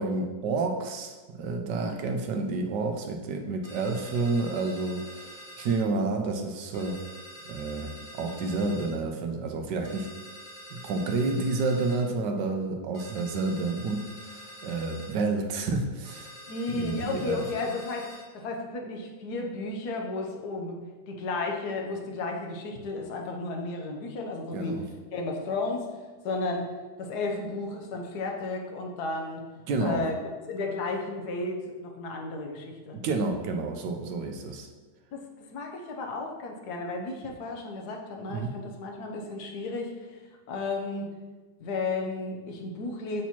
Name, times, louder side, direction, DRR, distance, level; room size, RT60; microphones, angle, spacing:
voice 1, 0.0-7.0 7.5-10.1 10.7-16.3 16.7-17.4 24.5-24.9 29.7-30.0 32.9-34.7 38.3-38.6, right 3 dB, 80° right, 4 dB, 1.3 m, -30 dB
sound 1, 3.6-5.8 6.7-8.9 9.8-12.0 12.9-15.1 16.0-18.2, equal, 30° left, 1.5 m, -46 dB
voice 2, 16.5-18.1 18.3-20.8 21.1-24.7 25.1-25.9 26.2-26.7 27.0-29.4 29.8-30.2 30.5-33.0 35.1-35.2 35.5-40.2 40.5-41.1 41.6-43.2, left 3 dB, 70° left, 1 dB, 1.4 m, -33 dB
8.1 x 4.4 x 2.9 m, 1.3 s
omnidirectional pair, 1.9 m